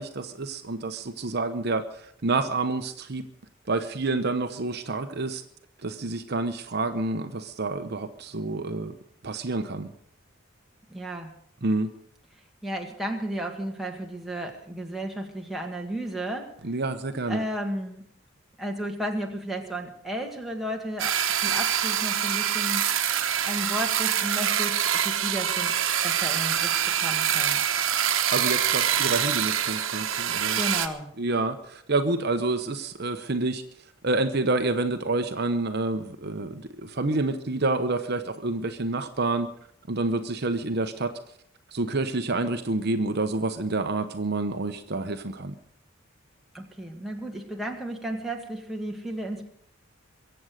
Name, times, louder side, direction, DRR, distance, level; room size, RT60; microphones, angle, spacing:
voice 1, 0.0-3.2 3.7-5.4 5.8-8.9 9.2-9.9 11.6-11.9 16.6-17.4 28.3-30.6 31.2-33.6 34.0-39.5 39.9-41.1 41.7-45.5, right 2 dB, 50° right, 8 dB, 0.9 m, -28 dB
voice 2, 10.9-11.3 12.6-16.5 17.3-18.0 18.6-22.9 23.5-25.7 26.0-27.6 30.5-31.1 46.5-49.5, right 1 dB, ahead, 0 dB, 1.9 m, -33 dB
sound 1, 21.0-30.9, right 9 dB, 70° right, 1.2 m, -25 dB
23.5 x 8.0 x 6.5 m, 0.66 s
head